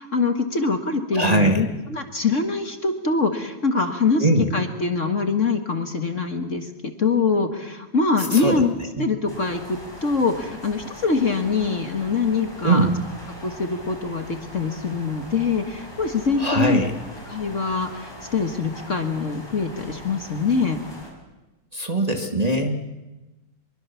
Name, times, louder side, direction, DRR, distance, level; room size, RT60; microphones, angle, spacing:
voice 1, 0.0-12.9 13.4-16.8 17.3-20.8, left 4 dB, 40° left, 7 dB, 1.9 m, -24 dB
voice 2, 1.1-1.6 4.2-4.5 8.3-8.6 12.6-12.9 16.4-16.9 21.7-22.8, right 2 dB, 20° right, 3 dB, 1.8 m, -20 dB
sound 1, 9.3-21.1, equal, 10° left, 6.1 m, -41 dB
24.5 x 23.5 x 7.1 m, 1.1 s
omnidirectional pair, 2.2 m